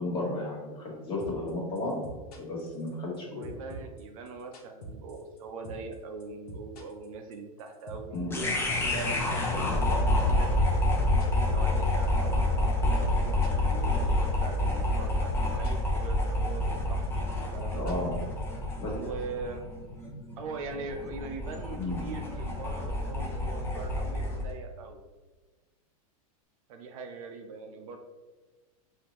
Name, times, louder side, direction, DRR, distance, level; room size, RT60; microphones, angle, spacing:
voice 1, 0.0-2.0 2.3-3.5 8.1-8.3 17.7-18.2 18.8-18.9 21.8-22.0, left 2 dB, 25° left, -3 dB, 1.4 m, -33 dB
sound 1, 1.2-1.5 1.8-3.2 3.4-5.4 5.6-5.9 6.2-10.4 10.6-12.1 12.3-14.3 14.5-14.8 15.1-15.9 16.2-18.8, right 1 dB, 80° left, 1.1 m, -44 dB
voice 2, 3.3-8.1 8.7-10.8 11.5-17.9 18.9-19.6 20.4-25.0 26.7-28.0, right 4 dB, 65° right, 4 dB, 0.7 m, -41 dB
sound 2, 8.3-24.5, left 1 dB, 10° left, 0.8 m, -28 dB
5.0 x 2.8 x 3.0 m, 1.3 s
hypercardioid pair, 130°, 19 cm